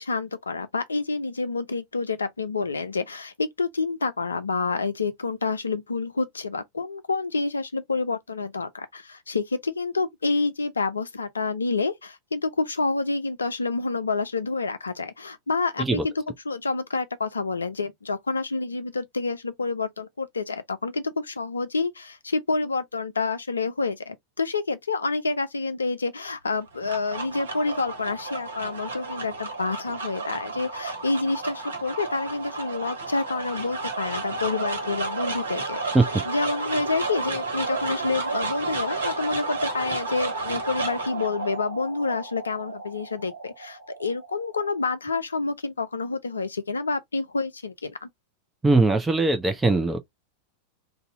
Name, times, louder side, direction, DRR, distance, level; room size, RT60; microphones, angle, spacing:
voice 1, 0.0-16.1 16.5-36.0 36.3-48.1, left 3 dB, 75° left, 0.6 m, -28 dB
sound 1, 26.5-44.9, right 3 dB, 70° right, 1.0 m, -32 dB
voice 2, 48.6-50.0, right 3 dB, 10° right, 0.7 m, -20 dB
2.7 x 2.3 x 4.1 m
figure-of-eight pair, 90°, 0 cm